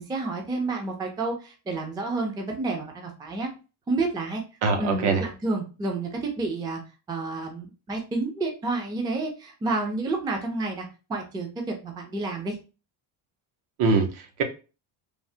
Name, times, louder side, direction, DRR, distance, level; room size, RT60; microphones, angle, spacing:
voice 1, 0.0-3.5 3.9-4.4 4.8-6.8 7.1-12.6, right 3 dB, 10° right, 0.3 m, -30 dB
voice 2, 4.6-5.2 13.8-14.4, right 4 dB, 75° right, 0.9 m, -23 dB
3.2 x 2.0 x 2.7 m
cardioid pair, 135°, 49 cm